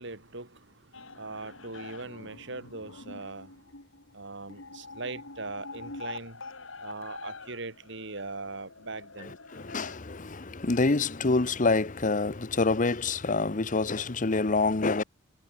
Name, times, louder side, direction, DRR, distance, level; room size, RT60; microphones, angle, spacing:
voice 1, 0.0-3.5 4.1-6.4 6.8-9.4, right 3 dB, 60° right, 3.8 m, -40 dB
sound 1, 0.9-10.0, left 3 dB, 75° left, 4.6 m, -45 dB
voice 2, 9.2-15.0, left 3 dB, 40° left, 0.9 m, -27 dB
head